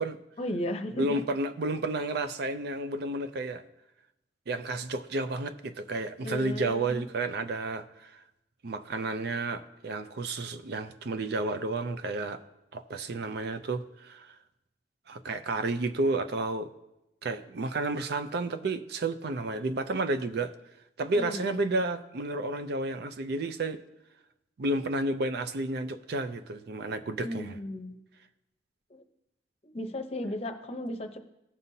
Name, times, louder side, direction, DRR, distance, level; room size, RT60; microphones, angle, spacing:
voice 1, 0.4-1.2 6.2-7.1 21.1-21.6 27.2-28.0 28.9-29.0 29.7-31.2, left 1 dB, 35° left, 0.7 m, -35 dB
voice 2, 1.0-3.6 4.5-8.2 8.6-12.4 12.7-14.3 15.1-16.7 17.2-20.5 21.0-23.8 24.6-27.5, right 2 dB, 55° right, 0.5 m, -31 dB
16.0 x 5.4 x 2.7 m
head